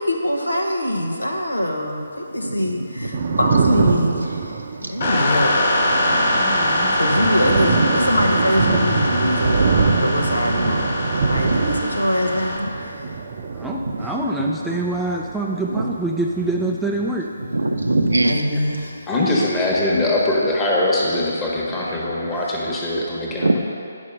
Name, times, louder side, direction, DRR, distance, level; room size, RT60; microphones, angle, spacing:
voice 1, 0.0-2.0 2.3-4.6 4.9-5.5 6.0-6.4 6.7-13.1 18.2-19.0, left 1 dB, 90° left, 2 dB, 1.1 m, -23 dB
voice 2, 2.3-3.3 4.8-5.2 6.3-7.2 9.8-10.1 11.4-11.7 13.0-13.1 14.4-14.7 15.8-15.9 17.4-18.4 21.7-22.0 23.4-23.6, right 2 dB, 75° right, 5 dB, 0.7 m, -25 dB
Thunder, 2.9-17.4 17.6-18.9, right 5 dB, 40° right, 0.6 m, -25 dB
sound 1, 5.0-12.6, left 1 dB, 50° left, 1.5 m, -22 dB
voice 3, 6.1-7.0 13.5-17.3, right 2 dB, 5° right, -2 dB, 0.4 m, -25 dB
voice 4, 19.1-23.6, left 1 dB, 15° left, -5 dB, 1.4 m, -21 dB
9.6 x 5.4 x 5.3 m, 2.5 s
figure-of-eight pair, 145°, 0 cm